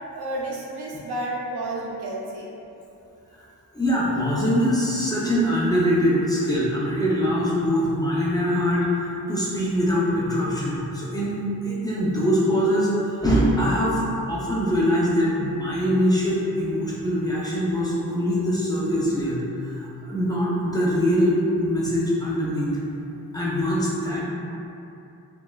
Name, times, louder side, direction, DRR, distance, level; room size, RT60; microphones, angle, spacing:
voice 1, 0.1-2.5, right 1 dB, 70° right, -4 dB, 0.6 m, -31 dB
voice 2, 3.7-12.9 13.2-14.0 14.3-19.4 19.6-22.8 23.3-24.2, equal, 10° left, -8 dB, 0.5 m, -23 dB
2.8 x 2.2 x 2.3 m, 2.7 s
cardioid pair, 55°, 40 cm